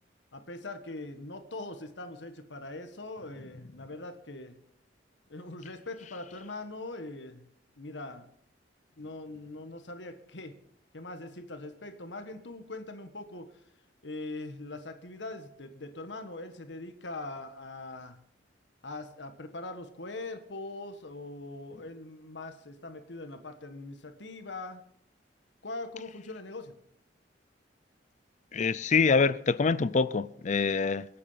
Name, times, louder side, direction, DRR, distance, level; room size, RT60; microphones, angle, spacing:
voice 1, 0.3-4.6 5.3-7.4 7.8-8.3 9.0-10.5 10.9-13.6 14.0-18.2 18.8-24.8 25.6-26.7, left 2 dB, 85° left, 1.5 m, -42 dB
voice 2, 28.5-31.1, left 4 dB, 40° left, 0.5 m, -25 dB
25.0 x 8.5 x 5.7 m
head